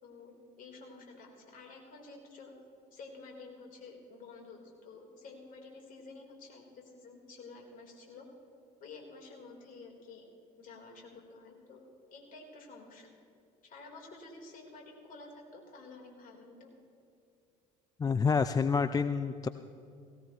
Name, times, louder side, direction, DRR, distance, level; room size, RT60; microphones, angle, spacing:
voice 1, 0.0-2.5 2.9-8.3 8.8-10.3 10.6-11.8 12.1-13.1 13.6-16.7, left 3 dB, 45° left, 1 dB, 3.9 m, -51 dB
voice 2, 18.0-19.5, left 5 dB, 20° left, 12 dB, 0.4 m, -28 dB
18.0 x 17.0 x 3.1 m, 2.5 s
hypercardioid pair, 65°, 19 cm